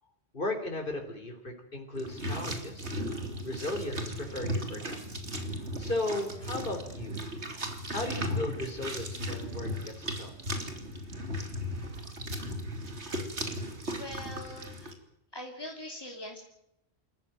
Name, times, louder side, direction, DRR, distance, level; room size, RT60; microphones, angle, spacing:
voice 1, 0.3-2.9 3.4-5.0 5.8-7.2 7.9-10.3, left 2 dB, 50° left, 3 dB, 3.9 m, -36 dB
sound 1, 2.0-14.9, equal, 80° right, 3.6 m, -36 dB
voice 2, 13.9-14.9 15.3-16.4, left 1 dB, 20° left, 1 dB, 2.9 m, -42 dB
27.5 x 14.5 x 9.2 m, 0.83 s
omnidirectional pair, 1.1 m